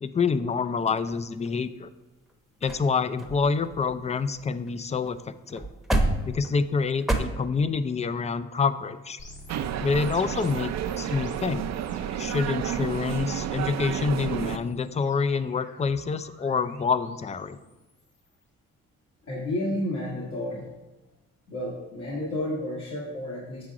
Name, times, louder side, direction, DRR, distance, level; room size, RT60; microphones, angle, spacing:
voice 1, 0.0-1.9 2.6-5.2 5.5-5.6 6.2-9.2 9.8-11.7 12.2-17.6, left 5 dB, 25° left, 13 dB, 0.4 m, -27 dB
sound 1, 0.9-1.7 2.3-2.4 2.6-2.9 3.2-4.8 5.0-5.2 5.5-7.2, right 1 dB, ahead, 0.9 m, -29 dB
sound 2, 9.2-12.4 12.7-13.3 14.3-18.4, left 1 dB, 40° left, 1.8 m, -50 dB
sound 3, 9.5-14.6, right 9 dB, 60° right, 0.5 m, -31 dB
voice 2, 19.2-20.7 21.5-23.6, left 1 dB, 70° left, -7 dB, 2.0 m, -31 dB
7.5 x 3.7 x 5.9 m, 1.1 s
cardioid pair, 90°, 30 cm